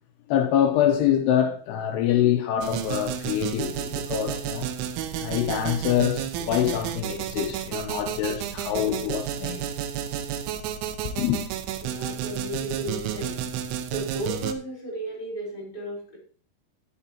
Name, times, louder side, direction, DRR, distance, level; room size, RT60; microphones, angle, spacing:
voice 1, 0.3-4.7 5.2-9.7 11.0-11.4, left 10 dB, 85° left, 2.3 m, -25 dB
sound 1, 2.6-14.5, right 10 dB, 85° right, 2.9 m, -31 dB
voice 2, 11.8-13.4 13.9-16.2, right 1 dB, 20° left, 4.0 m, -34 dB
11.0 x 8.9 x 2.9 m
omnidirectional pair, 5.8 m